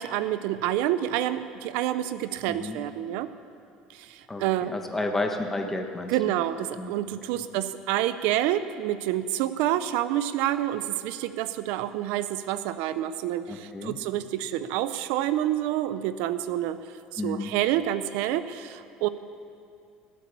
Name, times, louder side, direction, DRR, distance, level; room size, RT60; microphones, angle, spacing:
voice 1, 0.0-3.3 3.9-4.7 6.1-16.8 17.1-19.1, right 12 dB, 75° right, 13 dB, 0.6 m, -28 dB
voice 2, 2.5-2.8 4.3-6.3 6.8-7.4 13.5-14.0 17.2-17.5, left 2 dB, 10° left, 4 dB, 1.3 m, -32 dB
17.5 x 8.4 x 8.4 m, 2.4 s
cardioid pair, 140°, 3 cm